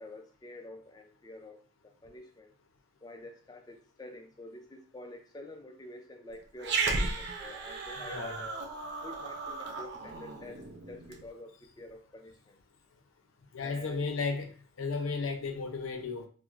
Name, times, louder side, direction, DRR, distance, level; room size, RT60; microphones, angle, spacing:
voice 1, 0.0-2.5 3.0-8.7 9.0-12.6 13.6-14.0, left 2 dB, 20° left, 4 dB, 0.3 m, -48 dB
Growling, 6.6-11.2, right 3 dB, 55° right, 0.4 m, -35 dB
voice 2, 8.0-8.5 13.5-14.5 14.8-16.3, left 4 dB, 80° left, 5 dB, 0.5 m, -34 dB
4.4 x 2.0 x 2.4 m, 0.42 s
head